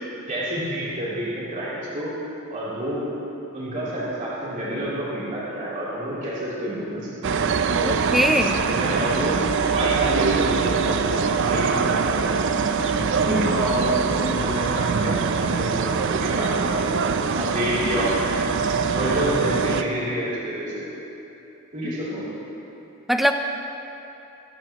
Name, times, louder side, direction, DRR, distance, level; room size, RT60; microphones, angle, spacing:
voice 1, 0.3-2.1 2.5-3.1 3.5-7.3 8.7-9.5 9.7-12.4 13.2-18.1 18.9-20.8 21.7-22.2, equal, 35° right, -10 dB, 3.2 m, -28 dB
sound 1, 7.2-19.8, right 5 dB, 55° right, 0.5 m, -23 dB
voice 2, 7.8-8.6 13.3-13.6 23.1-23.3, equal, ahead, 4 dB, 0.5 m, -21 dB
23.5 x 10.5 x 3.0 m, 2.9 s
head